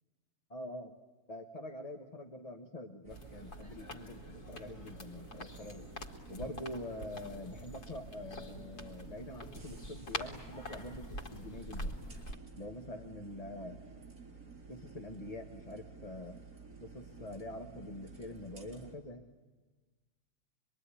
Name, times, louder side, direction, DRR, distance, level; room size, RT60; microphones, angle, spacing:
voice 1, 0.5-1.0 1.3-5.9 6.3-12.0 12.6-13.8 14.7-16.4 16.8-19.2, left 1 dB, 25° left, 4 dB, 1.6 m, -45 dB
sound 1, 3.0-19.0, right 4 dB, 65° right, 4.2 m, -52 dB
sound 2, 3.1-12.4, left 1 dB, 85° left, 2.9 m, -45 dB
26.0 x 22.5 x 10.0 m, 1.3 s
omnidirectional pair, 1.6 m